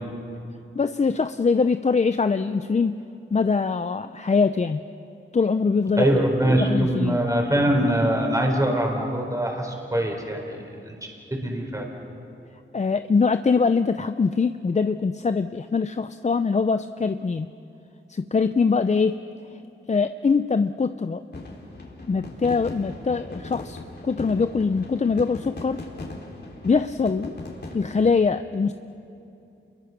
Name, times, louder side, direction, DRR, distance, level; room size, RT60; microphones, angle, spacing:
voice 1, 0.8-3.0 3.3-4.8 5.3-6.2 6.6-7.2 12.7-17.5 18.1-19.2 19.9-21.2 22.1-23.8 24.0-25.8 26.6-27.3 27.7-28.7, left 4 dB, 35° left, 10 dB, 0.6 m, -23 dB
voice 2, 6.0-10.9 11.4-11.8, right 1 dB, 15° right, 1 dB, 4.5 m, -23 dB
sound 1, 21.3-28.1, left 2 dB, 55° left, 4.0 m, -39 dB
28.0 x 22.5 x 6.1 m, 2.8 s
wide cardioid pair, 80°, 20 cm